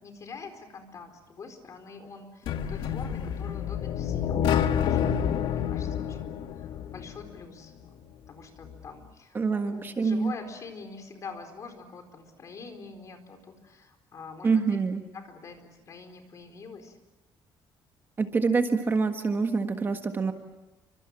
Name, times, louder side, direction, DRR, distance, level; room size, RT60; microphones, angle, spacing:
voice 1, 0.0-14.6 15.1-17.0, left 4 dB, 35° left, 7 dB, 4.4 m, -45 dB
sound 1, 2.5-7.4, left 8 dB, 65° left, 1.6 m, -28 dB
voice 2, 9.3-10.3 14.4-15.0 18.2-20.3, right 4 dB, 25° right, 6 dB, 1.5 m, -26 dB
29.5 x 25.5 x 7.5 m, 0.98 s
cardioid pair, 165°, 9 cm